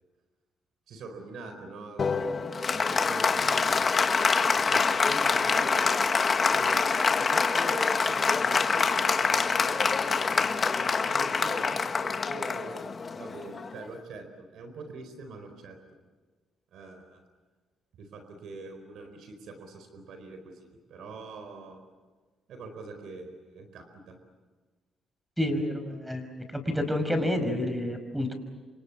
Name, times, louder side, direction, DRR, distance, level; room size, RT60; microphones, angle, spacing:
voice 1, 0.9-2.4 2.7-4.2 4.5-6.1 6.5-10.7 11.0-15.8 16.7-17.2 18.0-21.8 22.5-24.2, right 3 dB, 75° right, 7 dB, 4.5 m, -43 dB
Applause, 2.0-13.9, left 5 dB, 40° left, 1.5 m, -25 dB
voice 2, 25.4-28.3, left 1 dB, 5° right, 8 dB, 5.5 m, -29 dB
28.5 x 25.5 x 7.3 m, 1.4 s
cardioid pair, 90°, 0 cm